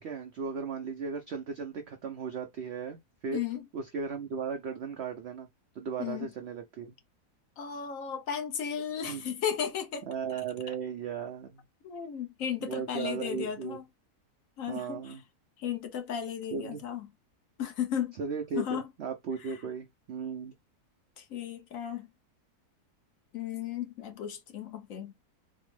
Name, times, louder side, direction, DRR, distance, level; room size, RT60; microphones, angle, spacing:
voice 1, 0.0-3.0 3.2-3.4 3.7-5.5 5.8-6.9 9.1-9.2 10.1-11.6 12.6-13.8 14.7-15.2 16.5-16.8 18.2-20.5, right 6 dB, 75° right, 0.6 m, -36 dB
voice 2, 3.3-3.6 6.0-6.3 7.6-10.1 11.8-13.8 14.6-15.2 15.6-17.1 17.6-18.2 18.5-18.9 19.4-19.6 21.2-22.1 23.3-25.1, left 8 dB, 65° left, 1.0 m, -35 dB
4.2 x 2.0 x 3.1 m
omnidirectional pair, 1.7 m